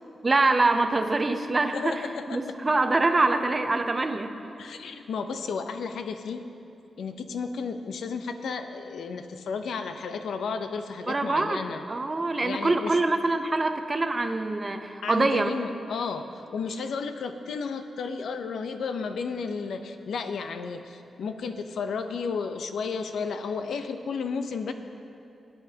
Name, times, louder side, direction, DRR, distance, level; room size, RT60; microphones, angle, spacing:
voice 1, 0.2-2.0 2.3-4.3 11.1-11.6 11.9-15.5, right 2 dB, 20° right, 7 dB, 0.5 m, -24 dB
voice 2, 1.7-2.5 4.6-6.4 7.0-11.8 12.4-13.0 15.0-24.7, left 5 dB, 80° left, 8 dB, 0.6 m, -33 dB
18.0 x 9.5 x 2.8 m, 2.8 s
wide cardioid pair, 165°, 0 cm